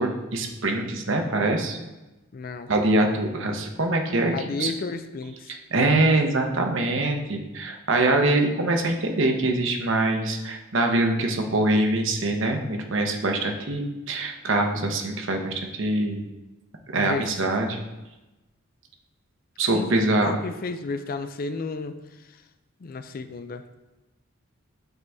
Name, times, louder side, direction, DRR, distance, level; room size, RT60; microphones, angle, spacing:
voice 1, 0.0-1.8 2.7-4.3 4.6-4.7 5.7-16.2 16.9-17.8 19.6-20.4, right 2 dB, 65° right, 3 dB, 0.9 m, -24 dB
voice 2, 2.3-2.7 4.3-5.6 16.9-17.3 19.7-22.4 22.8-23.6, left 4 dB, 45° left, 10 dB, 0.4 m, -33 dB
8.1 x 4.1 x 3.4 m, 1.1 s
head